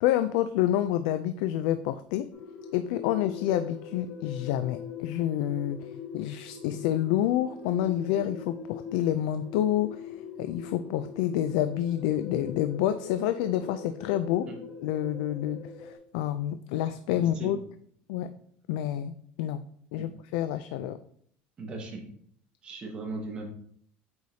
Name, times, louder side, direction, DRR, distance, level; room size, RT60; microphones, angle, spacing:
voice 1, 0.0-2.3 2.7-5.8 6.1-10.1 10.4-14.5 14.8-17.6 18.1-18.3 18.7-19.1 19.4-19.6 19.9-21.0, left 12 dB, 85° left, 10 dB, 0.4 m, -28 dB
sound 1, 2.3-16.0, left 6 dB, 65° left, 1.4 m, -42 dB
voice 2, 17.1-17.5 20.0-20.1 21.6-22.0 22.6-23.5, right 3 dB, 25° right, 0 dB, 1.4 m, -38 dB
8.1 x 4.8 x 2.8 m, 0.62 s
cardioid pair, 175°, 4 cm